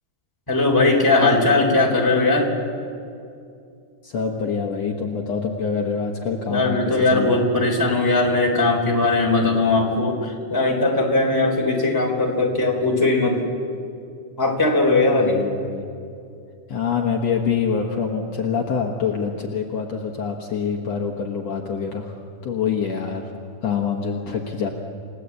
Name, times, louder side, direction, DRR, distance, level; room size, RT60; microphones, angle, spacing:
voice 1, 0.5-2.5 6.5-13.4 14.4-15.4, left 2 dB, 5° left, 0 dB, 3.4 m, -19 dB
voice 2, 4.0-7.4 15.1-15.8 16.7-23.3 23.6-24.7, left 6 dB, 60° left, 1 dB, 2.4 m, -25 dB
29.5 x 17.5 x 8.3 m, 2.5 s
omnidirectional pair, 3.7 m